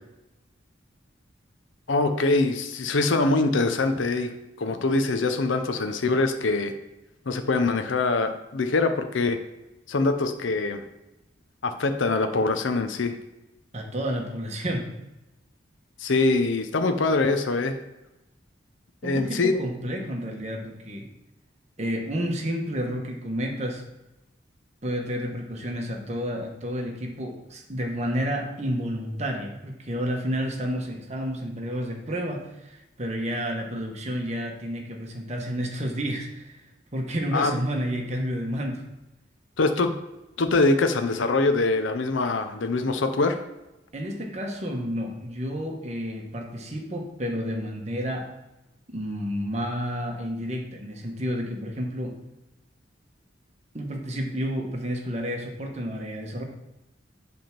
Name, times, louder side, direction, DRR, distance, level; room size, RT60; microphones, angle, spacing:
voice 1, 1.9-4.3 4.6-6.7 7.3-9.4 9.9-10.8 11.6-13.1 16.0-17.8 19.0-19.6 37.3-37.5 39.6-39.9 40.4-43.4, left 3 dB, 90° left, 7 dB, 0.7 m, -23 dB
voice 2, 13.7-14.9 19.0-21.1 21.8-23.8 24.8-36.6 36.9-38.8 43.9-48.3 48.9-52.1 53.7-56.4, equal, 35° right, 2 dB, 1.2 m, -30 dB
7.7 x 3.5 x 5.9 m, 0.98 s
head